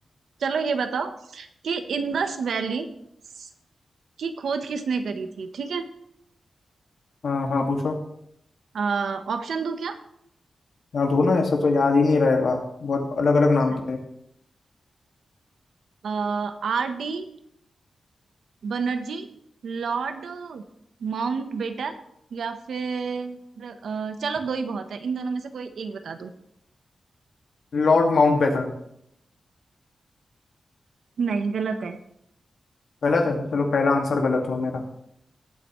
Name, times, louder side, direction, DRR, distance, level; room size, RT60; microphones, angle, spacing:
voice 1, 0.4-2.9 3.4-3.5 4.2-5.9 8.7-10.0 16.0-17.3 18.6-19.3 19.6-20.6 21.0-22.0 22.3-26.3 31.2-32.0, right 5 dB, 85° right, 8 dB, 1.0 m, -29 dB
voice 2, 7.2-8.0 10.9-14.0 27.7-28.7 33.0-34.8, left 3 dB, 70° left, 2 dB, 2.1 m, -21 dB
18.0 x 8.9 x 3.2 m, 0.76 s
wide cardioid pair, 120°, 0 cm